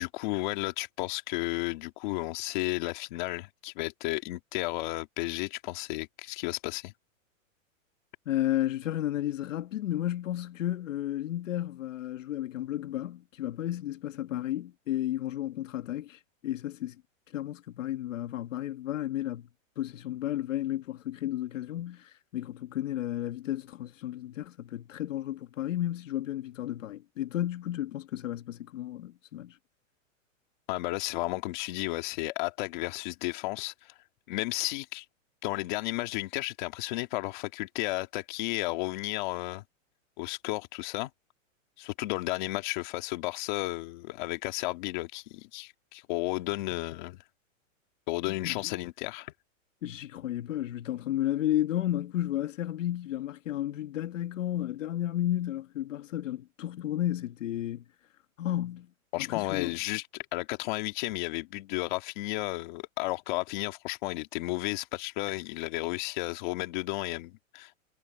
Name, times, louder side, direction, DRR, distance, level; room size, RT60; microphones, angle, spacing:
voice 1, 0.0-6.9 30.7-33.9 34.3-35.0 35.4-39.6 40.2-41.1 41.8-47.2 48.1-49.3 59.1-67.8, left 20 dB, 35° left, 2.1 m, -33 dB
voice 2, 8.3-17.0 17.3-19.5 19.8-29.6 48.3-48.7 49.8-57.8 58.4-58.9 59.2-59.7, left 13 dB, 70° left, 1.7 m, -33 dB
supercardioid pair, 170°, 40 cm